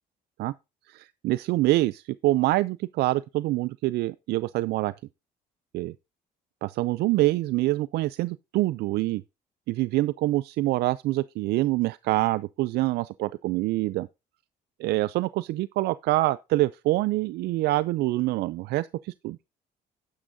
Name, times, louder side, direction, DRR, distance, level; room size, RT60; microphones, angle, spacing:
voice 1, 0.9-4.9 5.7-5.9 6.6-9.2 9.7-14.1 14.8-19.4, right 18 dB, 75° right, 0.4 m, -25 dB
11.0 x 9.8 x 2.7 m
cardioid pair, 110°, 17 cm